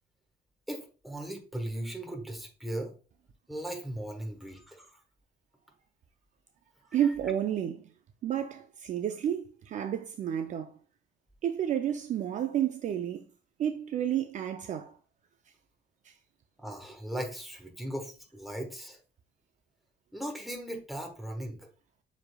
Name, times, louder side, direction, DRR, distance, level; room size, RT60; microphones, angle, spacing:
voice 1, 0.7-2.9 3.5-5.0 16.6-19.0 20.1-21.7, right 1 dB, ahead, 1.2 m, -38 dB
voice 2, 6.9-7.9 8.2-10.7 11.4-13.2 13.6-14.9 16.1-16.2, right 10 dB, 45° right, 0.4 m, -31 dB
6.9 x 3.4 x 2.2 m
cardioid pair, 110°, 17 cm